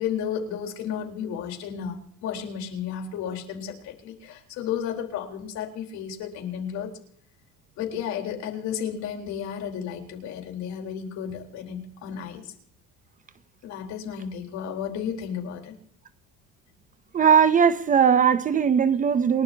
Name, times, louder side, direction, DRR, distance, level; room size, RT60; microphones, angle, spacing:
voice 1, 0.0-6.9 7.8-12.5 13.6-15.7, left 8 dB, 65° left, 4.1 m, -33 dB
voice 2, 17.1-19.4, right 7 dB, 25° right, 0.7 m, -19 dB
28.5 x 12.0 x 2.9 m
cardioid pair, 150°, 30 cm